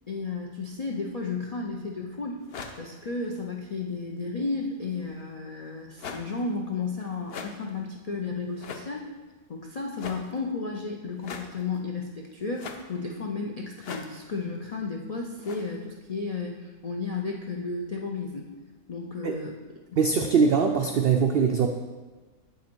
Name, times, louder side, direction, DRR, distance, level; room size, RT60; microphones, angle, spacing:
voice 1, 0.1-2.4 2.8-9.1 9.5-18.4 18.9-19.5, left 4 dB, 85° left, 0 dB, 0.3 m, -33 dB
sound 1, 2.4-3.4 4.8-5.3 6.0-6.6 7.2-7.8 8.5-9.0 9.9-10.4 11.2-11.8 12.5-13.1 13.8-14.6 15.4-15.8, left 5 dB, 55° left, 0.7 m, -42 dB
voice 2, 20.0-21.7, right 6 dB, 85° right, 4 dB, 0.5 m, -22 dB
7.4 x 5.7 x 4.5 m, 1.3 s
omnidirectional pair, 1.5 m